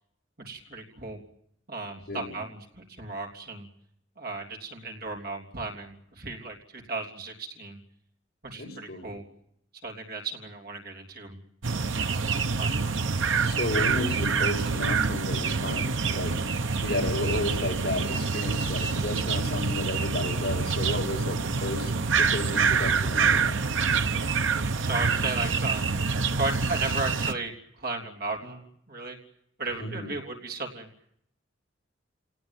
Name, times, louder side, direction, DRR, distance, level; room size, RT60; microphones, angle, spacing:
voice 1, 0.4-1.2 1.7-3.7 4.2-7.8 8.4-9.2 9.8-11.4 11.9-12.8 24.8-25.9 26.3-29.2 29.6-30.9, right 3 dB, 55° right, 2 dB, 3.5 m, -35 dB
voice 2, 8.6-9.1 13.4-16.4 16.8-21.9 22.2-23.6 29.8-30.1, left 2 dB, 55° left, 0 dB, 6.9 m, -32 dB
sound 1, 11.6-27.3, right 5 dB, 80° right, 0.9 m, -26 dB
29.0 x 18.0 x 9.2 m, 0.75 s
head